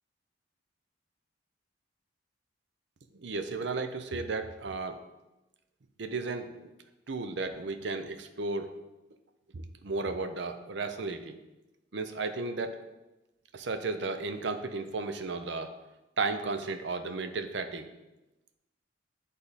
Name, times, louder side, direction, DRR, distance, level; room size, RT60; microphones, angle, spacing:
voice 1, 3.1-5.0 6.0-6.7 7.1-8.7 9.5-11.4 11.9-12.8 13.5-15.7 16.2-17.9, right 3 dB, 60° right, 8 dB, 0.6 m, -34 dB
9.9 x 3.6 x 4.1 m, 1.0 s
head